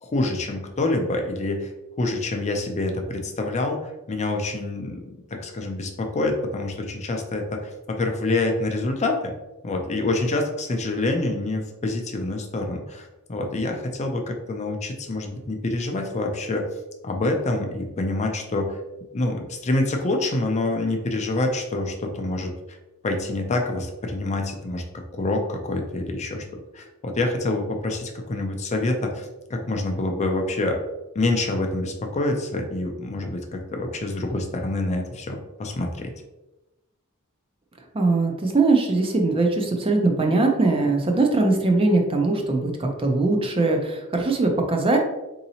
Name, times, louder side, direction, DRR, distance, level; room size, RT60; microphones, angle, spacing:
voice 1, 0.0-1.7 2.0-5.0 5.3-9.3 9.6-16.7 17.0-18.8 19.1-22.8 23.0-24.8 25.1-26.4 26.7-30.8 31.1-36.1, left 2 dB, 30° left, 3 dB, 0.4 m, -26 dB
voice 2, 37.9-45.0, right 3 dB, 25° right, 2 dB, 0.4 m, -21 dB
4.0 x 2.7 x 2.7 m, 0.99 s
head